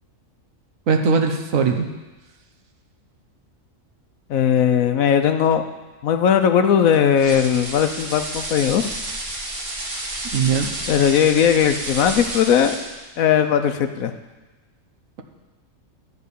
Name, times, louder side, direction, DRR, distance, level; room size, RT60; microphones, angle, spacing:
voice 1, 0.9-1.8 10.3-10.7, right 5 dB, 75° right, 4 dB, 1.4 m, -19 dB
voice 2, 4.3-5.6 6.0-8.9 10.9-12.7 13.2-14.1, left 8 dB, 85° left, 8 dB, 1.2 m, -18 dB
sound 1, 7.2-13.1, right 1 dB, 45° right, 1.6 m, -31 dB
12.5 x 4.7 x 8.3 m, 1.2 s
omnidirectional pair, 1.4 m